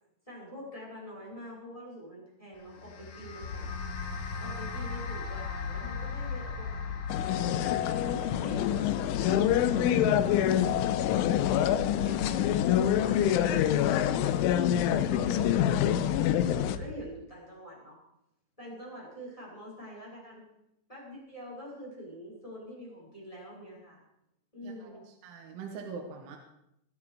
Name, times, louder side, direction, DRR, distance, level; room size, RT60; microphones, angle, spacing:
voice 1, 0.3-3.7 4.4-6.9 7.7-8.8 9.2-11.1 11.7-12.4 12.9-18.0 18.6-20.4 20.9-24.0 24.5-25.0, equal, 5° left, -4 dB, 5.8 m, -46 dB
sound 1, 2.5-13.1, left 3 dB, 55° left, 2.7 m, -44 dB
sound 2, 3.4-16.9, left 4 dB, 40° left, 3.5 m, -38 dB
sound 3, 7.1-16.8, left 11 dB, 85° left, 3.2 m, -26 dB
voice 2, 24.6-26.4, right 5 dB, 75° right, 1 dB, 3.9 m, -43 dB
25.0 x 9.9 x 5.0 m, 0.83 s
omnidirectional pair, 5.6 m